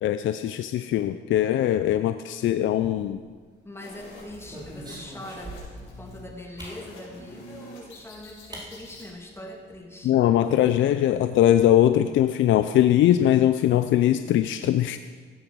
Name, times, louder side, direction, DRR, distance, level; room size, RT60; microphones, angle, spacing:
voice 1, 0.0-3.2 10.0-15.0, left 12 dB, 75° left, 10 dB, 0.5 m, -21 dB
sound 1, 2.7-3.4 3.9-5.9 6.6-6.8 7.9-8.0 8.5-8.7 9.0-9.1 9.4-9.8, right 1 dB, 20° right, 3.8 m, -43 dB
voice 2, 3.6-10.1, left 1 dB, 10° left, 1 dB, 2.8 m, -42 dB
sound 2, 3.8-9.1, left 1 dB, 90° left, 4.6 m, -46 dB
15.5 x 9.0 x 6.3 m, 1.5 s
cardioid pair, 90°, 20 cm